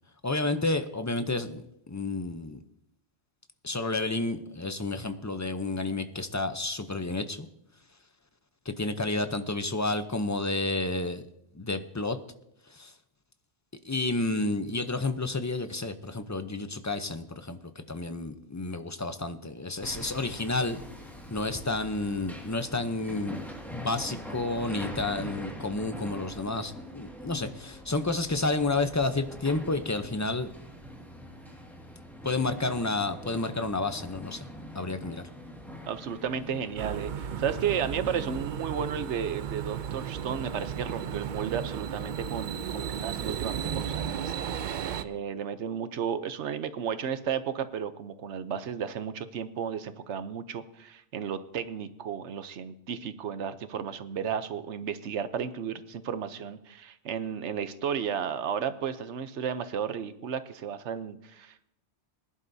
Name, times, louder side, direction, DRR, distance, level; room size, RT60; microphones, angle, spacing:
voice 1, 0.2-2.6 3.6-7.5 8.7-11.2 11.5-12.2 12.7-12.9 13.8-20.8 21.3-23.4 23.7-30.5 32.2-34.5 34.7-35.2, left 2 dB, 20° left, 9 dB, 0.5 m, -30 dB
Hammer, 19.8-38.4, equal, ahead, 1.9 m, -44 dB
voice 2, 35.9-61.7, right 7 dB, 85° right, 12 dB, 1.1 m, -33 dB
sound 1, 36.8-45.0, right 8 dB, 55° right, 0.6 m, -34 dB
21.0 x 11.0 x 2.7 m, 0.80 s
omnidirectional pair, 1.2 m